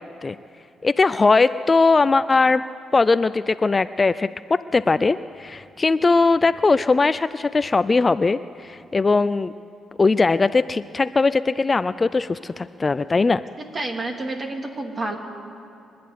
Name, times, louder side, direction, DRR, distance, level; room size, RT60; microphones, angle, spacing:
voice 1, 0.8-2.6 2.9-9.5 10.0-13.4, left 3 dB, 25° left, 14 dB, 0.4 m, -20 dB
voice 2, 13.7-15.2, right 2 dB, 35° right, 3 dB, 2.8 m, -29 dB
24.5 x 11.5 x 9.5 m, 2.7 s
cardioid pair, 90°, 0 cm